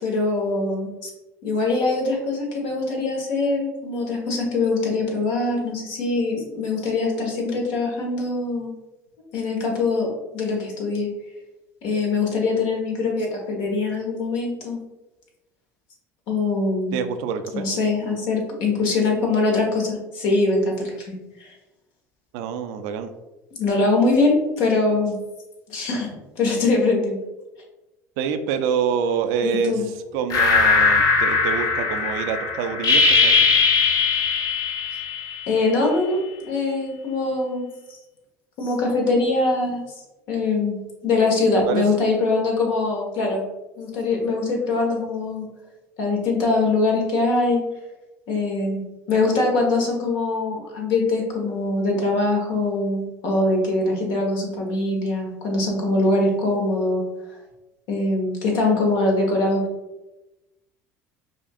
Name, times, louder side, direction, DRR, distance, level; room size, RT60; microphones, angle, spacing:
voice 1, 0.0-1.1 1.4-8.7 9.3-10.1 10.3-11.1 11.8-14.8 16.3-17.0 17.5-21.1 21.4-21.5 23.5-25.2 25.7-27.2 29.4-29.8 35.5-38.0 38.6-39.8 40.3-43.4 43.8-45.5 46.0-47.6 48.3-57.0 57.9-59.6, left 3 dB, 70° left, 0 dB, 1.1 m, -23 dB
voice 2, 16.9-17.7 22.3-23.1 28.2-33.4 41.5-41.8, right 7 dB, 70° right, 8 dB, 0.4 m, -26 dB
sound 1, 30.3-35.7, left 4 dB, 50° left, 0.8 m, -19 dB
5.0 x 2.4 x 2.4 m, 1.0 s
hypercardioid pair, 75°, 8 cm